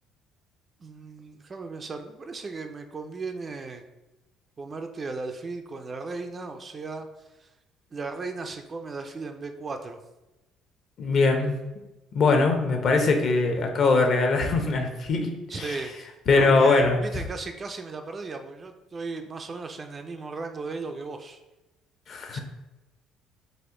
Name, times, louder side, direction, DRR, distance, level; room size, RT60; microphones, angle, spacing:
voice 1, 0.8-3.8 4.6-7.5 7.9-10.0 15.5-21.4 22.3-22.4, right 3 dB, 25° right, 6 dB, 0.3 m, -36 dB
voice 2, 11.0-11.5 12.1-15.8 16.3-17.0 22.1-22.4, left 3 dB, 45° left, 4 dB, 0.7 m, -22 dB
4.2 x 2.5 x 4.7 m, 1.0 s
cardioid pair, 135°, 0 cm